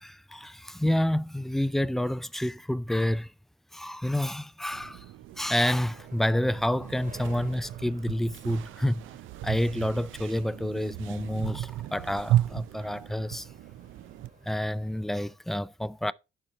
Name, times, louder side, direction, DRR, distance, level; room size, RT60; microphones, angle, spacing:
voice 1, 0.0-3.3 3.7-5.0 5.4-9.0 9.4-13.5 14.5-16.1, left 1 dB, ahead, 0.4 m, -29 dB
sound 1, 4.7-14.3, right 14 dB, 80° right, 0.5 m, -35 dB
sound 2, 5.9-15.3, right 4 dB, 40° right, 3.3 m, -53 dB
11.0 x 4.5 x 4.2 m
cardioid pair, 90°, 20 cm